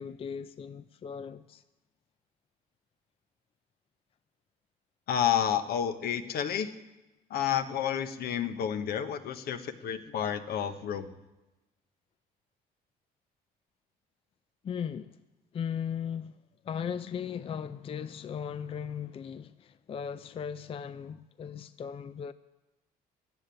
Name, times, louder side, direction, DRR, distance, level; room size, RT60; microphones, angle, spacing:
voice 1, 0.0-1.6 14.6-15.2 15.5-16.4 16.6-22.3, left 7 dB, 35° left, 0.4 m, -37 dB
voice 2, 5.1-6.7 7.3-11.1, left 9 dB, 65° left, 1.0 m, -30 dB
14.0 x 7.9 x 9.8 m
cardioid pair, 110°, 17 cm